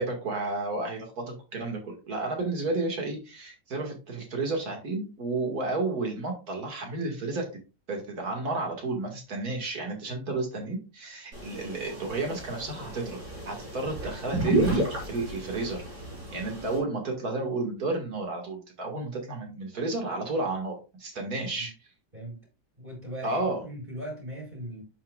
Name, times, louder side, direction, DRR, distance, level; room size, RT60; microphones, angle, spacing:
voice 1, 0.0-7.5 7.9-13.2 13.5-15.8 16.3-21.7 23.2-23.6, right 2 dB, 60° right, 2.5 m, -32 dB
sound 1, 11.3-16.8, right 2 dB, 80° right, 5.0 m, -31 dB
voice 2, 22.8-24.8, right 1 dB, 30° right, 4.5 m, -39 dB
11.5 x 5.8 x 2.4 m
omnidirectional pair, 1.8 m